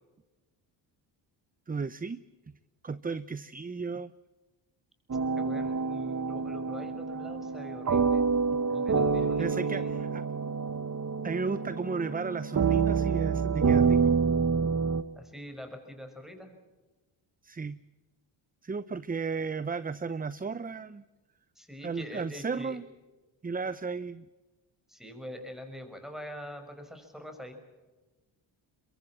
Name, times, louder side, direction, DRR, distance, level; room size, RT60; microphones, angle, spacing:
voice 1, 1.7-2.2 2.8-4.1 9.4-10.2 11.2-14.2 17.4-17.8 18.6-21.0 21.8-22.8 23.4-24.3, right 4 dB, 20° right, 16 dB, 0.7 m, -34 dB
sound 1, 5.1-15.0, right 5 dB, 35° right, 1.3 m, -27 dB
voice 2, 5.4-8.2 8.7-9.9 15.2-16.5 21.6-22.8 24.9-27.6, equal, ahead, 6 dB, 6.1 m, -44 dB
23.5 x 22.5 x 7.4 m, 1.2 s
cardioid pair, 80°, 47 cm